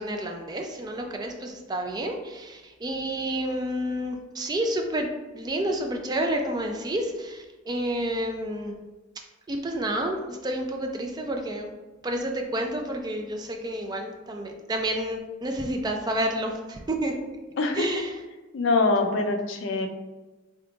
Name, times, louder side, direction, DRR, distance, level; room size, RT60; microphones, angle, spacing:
voice 1, 0.0-5.1 5.3-8.7 9.5-11.7 12.0-17.1 17.7-18.2, right 1 dB, 20° right, 3 dB, 0.3 m, -30 dB
voice 2, 18.5-19.9, left 3 dB, 65° left, 5 dB, 0.5 m, -24 dB
3.7 x 3.7 x 2.3 m, 1.2 s
head